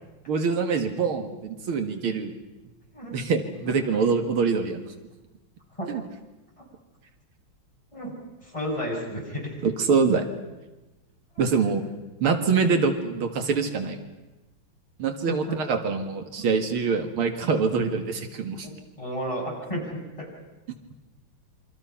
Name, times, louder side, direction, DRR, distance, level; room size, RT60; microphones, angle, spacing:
voice 1, 0.3-2.3 3.1-4.8 5.9-6.0 9.6-10.3 11.4-11.8 12.2-14.0 15.0-18.7, right 5 dB, 90° right, 6 dB, 2.6 m, -24 dB
voice 2, 8.4-9.6 15.3-15.6 18.6-19.9, equal, 15° left, -2 dB, 6.4 m, -32 dB
27.5 x 24.5 x 5.8 m, 1.1 s
omnidirectional pair, 2.3 m